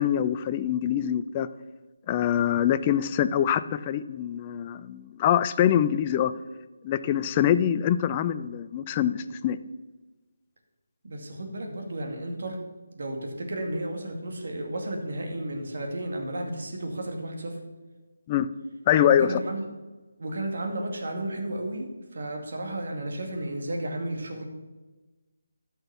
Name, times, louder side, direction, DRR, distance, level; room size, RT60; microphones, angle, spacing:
voice 1, 0.0-1.5 2.1-6.3 6.8-9.6 18.3-18.5 18.9-19.4, left 10 dB, 25° left, 12 dB, 0.4 m, -24 dB
voice 2, 11.0-12.6 12.9-17.6 19.1-19.6 20.2-24.4, right 1 dB, 60° right, 2 dB, 2.4 m, -33 dB
13.5 x 6.0 x 5.8 m, 1.2 s
figure-of-eight pair, 155°, 0 cm